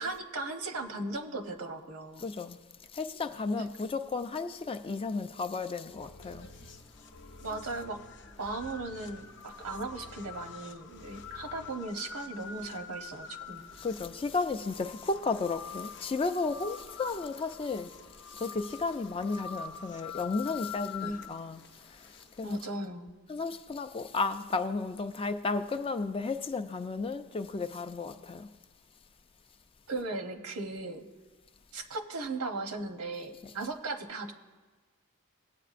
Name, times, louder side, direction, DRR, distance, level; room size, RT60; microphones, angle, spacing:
voice 1, 0.0-2.3 3.6-3.7 7.4-8.0 8.4-13.7 21.0-21.2 22.4-23.1 29.9-31.0 31.7-34.3, right 2 dB, 85° right, 0.9 m, -37 dB
voice 2, 2.2-2.6 2.9-6.5 13.8-17.9 18.3-21.7 22.4-22.6 23.3-28.5 33.4-33.5, left 4 dB, 25° left, 0.4 m, -33 dB
sound 1, 5.9-11.7, left 1 dB, 85° left, 0.7 m, -53 dB
sound 2, 6.2-22.6, left 6 dB, 55° left, 0.7 m, -46 dB
19.0 x 8.7 x 2.5 m
head